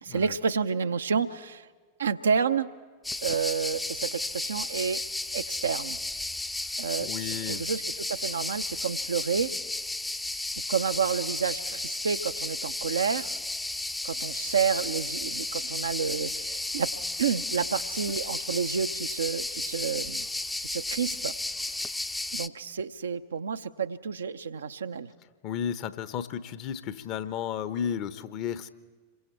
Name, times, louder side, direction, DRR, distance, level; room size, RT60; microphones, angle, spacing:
voice 1, 0.0-1.7 2.0-2.7 3.2-5.0 5.3-6.0 6.8-9.5 10.7-13.3 14.0-16.9 17.2-20.3 20.6-21.4 21.7-21.9 22.3-25.1, right 6 dB, 70° right, 9 dB, 0.7 m, -30 dB
sound 1, 3.0-22.5, left 2 dB, 10° left, 0.7 m, -33 dB
voice 2, 7.0-7.7 25.4-28.7, left 8 dB, 40° left, 13 dB, 1.0 m, -33 dB
27.0 x 23.5 x 4.5 m, 1.5 s
figure-of-eight pair, 90°, 0 cm